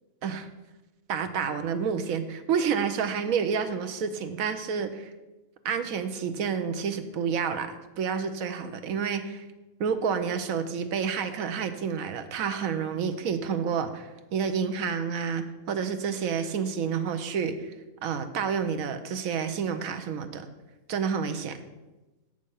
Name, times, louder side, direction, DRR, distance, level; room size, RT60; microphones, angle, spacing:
voice 1, 1.1-5.1 5.6-9.4 9.8-17.7 18.0-20.5 20.9-21.6, right 6 dB, 80° right, 8 dB, 1.2 m, -29 dB
7.6 x 6.5 x 5.4 m, 1.1 s
omnidirectional pair, 1.4 m